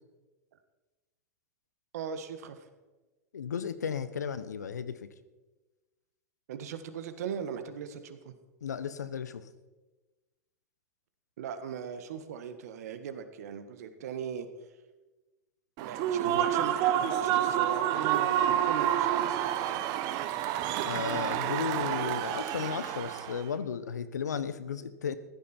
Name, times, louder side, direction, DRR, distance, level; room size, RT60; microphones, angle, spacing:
voice 1, 1.9-2.7 6.5-8.3 11.4-14.5 15.8-19.4, right 7 dB, 65° right, 9 dB, 1.6 m, -39 dB
voice 2, 3.3-5.1 8.6-9.5 16.2-16.4 20.8-25.2, left 7 dB, 85° left, 14 dB, 1.0 m, -34 dB
Human voice / Cheering / Applause, 15.8-23.4, right 11 dB, 45° right, 1.0 m, -29 dB
15.5 x 12.0 x 4.5 m, 1.2 s
hypercardioid pair, 105°, 9 cm